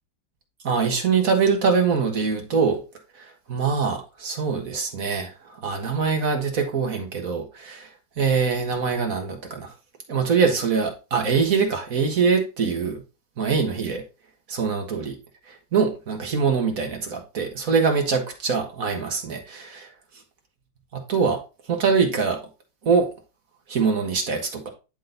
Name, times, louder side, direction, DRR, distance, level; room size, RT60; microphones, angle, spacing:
voice 1, 0.6-2.8 3.2-7.9 8.2-9.7 10.1-13.0 13.4-14.0 14.5-15.2 15.5-19.9 20.9-21.4 21.7-22.4 22.8-23.1 23.7-24.7, right 5 dB, 55° right, 1.7 m, -23 dB
10.0 x 3.8 x 3.9 m
omnidirectional pair, 1.8 m